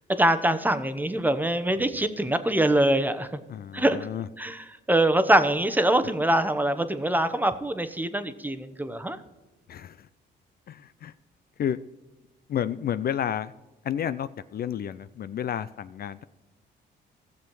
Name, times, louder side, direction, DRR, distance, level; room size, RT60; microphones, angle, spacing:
voice 1, 0.1-3.3 3.7-4.0 4.4-9.2, right 1 dB, 10° right, 10 dB, 1.0 m, -24 dB
voice 2, 3.5-4.3 9.7-10.1 10.7-11.1 11.6-11.8 12.5-13.5 13.8-16.2, left 9 dB, 50° left, 15 dB, 0.4 m, -31 dB
15.5 x 7.1 x 4.7 m, 1.1 s
cardioid pair, 90°, 20 cm